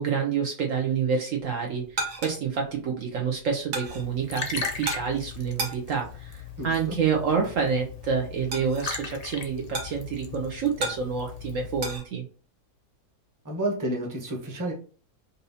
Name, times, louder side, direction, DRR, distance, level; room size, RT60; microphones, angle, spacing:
voice 1, 0.0-12.3, right 6 dB, 65° right, 1 dB, 0.9 m, -28 dB
sound 1, 1.4-12.1, right 3 dB, 80° right, 1.6 m, -38 dB
Liquid, 3.9-12.0, left 5 dB, 60° left, 0.4 m, -38 dB
voice 2, 6.6-7.0 13.4-14.7, right 1 dB, 15° right, -1 dB, 0.8 m, -30 dB
5.3 x 2.7 x 2.7 m, 0.40 s
omnidirectional pair, 1.6 m